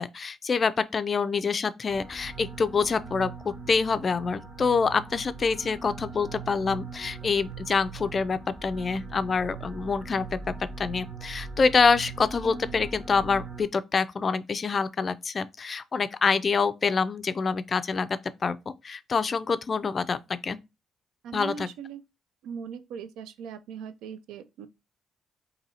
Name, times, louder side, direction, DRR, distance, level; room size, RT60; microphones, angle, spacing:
voice 1, 0.0-3.3 3.7-18.1 18.4-20.2 20.4-20.6 21.3-21.7, left 5 dB, 40° left, 0.3 m, -26 dB
sound 1, 1.9-13.6, right 4 dB, 45° right, 1.3 m, -41 dB
voice 2, 21.2-22.0 22.4-24.7, right 7 dB, 90° right, 0.4 m, -39 dB
2.7 x 2.7 x 4.1 m
cardioid pair, 90°, 0 cm